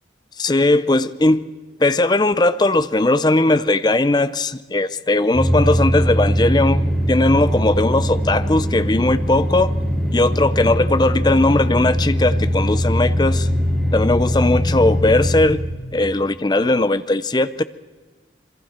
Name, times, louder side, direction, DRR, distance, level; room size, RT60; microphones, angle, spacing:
voice 1, 0.4-1.5 1.8-9.8 10.1-13.5 13.9-15.6 15.9-17.6, left 2 dB, 20° left, 0.5 m, -18 dB
sound 1, 5.3-15.5, equal, ahead, 6.3 m, -21 dB
27.0 x 23.0 x 4.4 m
head